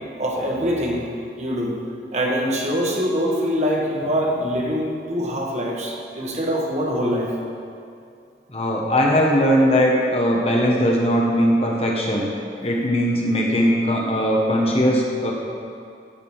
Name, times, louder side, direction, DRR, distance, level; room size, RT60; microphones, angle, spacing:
voice 1, 0.2-1.0 1.4-1.7 2.1-7.3, equal, 35° right, -2 dB, 1.6 m, -24 dB
voice 2, 8.5-12.3 12.6-15.3, equal, 30° left, -1 dB, 1.3 m, -19 dB
14.0 x 5.2 x 7.2 m, 2.5 s
head